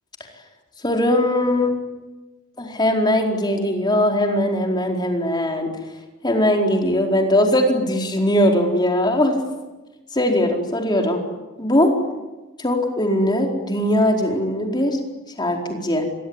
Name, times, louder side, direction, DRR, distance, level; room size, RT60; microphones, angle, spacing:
voice 1, 0.8-1.8 2.6-5.7 6.2-9.3 10.1-11.2 11.6-11.9 12.6-15.0 15.4-16.0, left 1 dB, 20° left, 2 dB, 4.4 m, -20 dB
27.0 x 22.5 x 9.8 m, 1.1 s
head